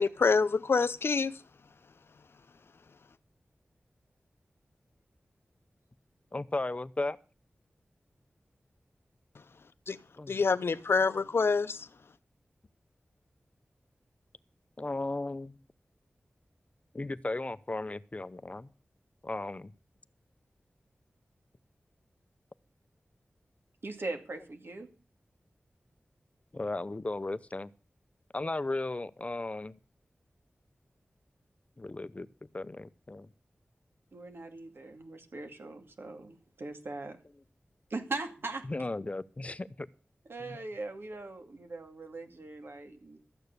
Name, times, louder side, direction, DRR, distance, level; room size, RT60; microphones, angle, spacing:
voice 1, 0.0-1.4 9.9-10.0 10.3-11.9, left 4 dB, 80° left, 0.7 m, -26 dB
voice 2, 6.3-7.2 10.2-10.3 14.8-15.6 16.9-18.7 19.2-19.7 26.5-27.7 28.3-29.8 31.8-32.3 32.5-33.3 38.7-39.9 40.5-40.6, left 2 dB, 35° left, 0.6 m, -35 dB
voice 3, 23.8-24.9 34.1-37.2 37.9-38.6 40.3-43.2, right 3 dB, 70° right, 2.3 m, -40 dB
13.5 x 9.0 x 6.7 m
wide cardioid pair, 80°, 4 cm